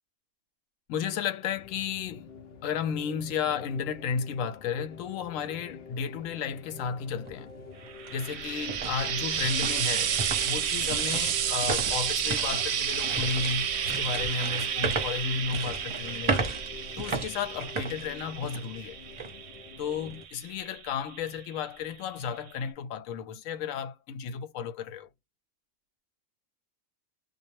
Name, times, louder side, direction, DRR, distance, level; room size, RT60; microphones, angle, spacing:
voice 1, 0.9-2.3 2.6-7.5 8.1-10.1 10.4-16.5 17.0-19.0 19.8-25.1, left 7 dB, 90° left, 1.0 m, -33 dB
sound 1, 1.5-20.3, left 4 dB, 60° left, 0.7 m, -47 dB
sound 2, 7.3-7.4 7.9-18.8 19.2-19.3 19.9-20.2, right 3 dB, 30° right, 0.7 m, -35 dB
Frying (food), 7.9-21.3 22.3-22.4, right 8 dB, 65° right, 0.8 m, -31 dB
2.3 x 2.0 x 2.8 m
omnidirectional pair, 1.3 m